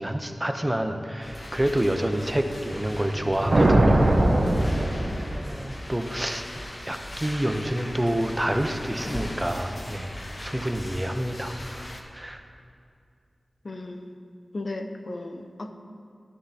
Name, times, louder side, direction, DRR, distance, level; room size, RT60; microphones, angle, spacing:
voice 1, 0.0-4.3 4.6-5.0 5.3-6.4 6.8-10.2 10.4-12.4, right 1 dB, 15° right, 5 dB, 0.7 m, -28 dB
sound 1, 1.2-12.0, left 1 dB, 40° left, 1.0 m, -39 dB
sound 2, 3.1-5.6, right 1 dB, 55° right, 1.0 m, -21 dB
voice 2, 13.6-14.1 14.5-15.7, left 2 dB, 55° left, 6 dB, 0.7 m, -35 dB
13.5 x 10.0 x 2.8 m, 2.4 s
wide cardioid pair, 55°, 0 cm